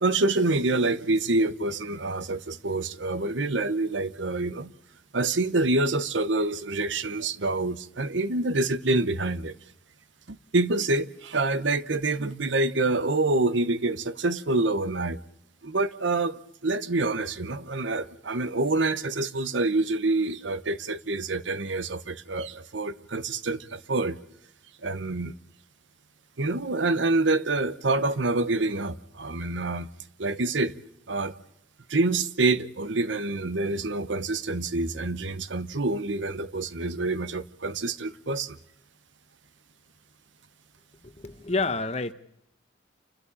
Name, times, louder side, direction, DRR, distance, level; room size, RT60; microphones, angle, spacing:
voice 1, 0.0-4.7 5.1-9.5 10.3-15.2 15.6-24.2 24.8-25.3 26.4-29.9 30.2-30.7 31.1-31.3 31.9-38.6, right 2 dB, 80° right, 1.0 m, -27 dB
voice 2, 41.0-42.1, left 3 dB, 35° left, 1.1 m, -29 dB
28.5 x 12.5 x 8.6 m
head